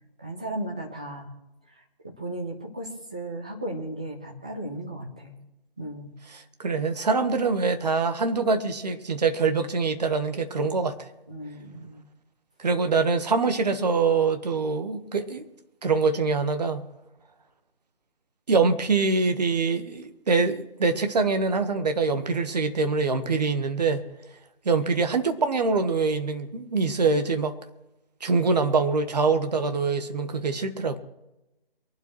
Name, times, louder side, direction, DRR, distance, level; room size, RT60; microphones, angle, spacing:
voice 1, 0.2-1.3 2.0-5.4 5.8-6.1 11.3-12.0, right 1 dB, 5° right, 0.6 m, -35 dB
voice 2, 6.3-11.1 12.6-15.4 15.8-16.8 18.5-24.0 24.6-27.5 28.2-31.0, right 4 dB, 40° right, 1.4 m, -24 dB
24.0 x 11.5 x 3.2 m
figure-of-eight pair, 150°, 31 cm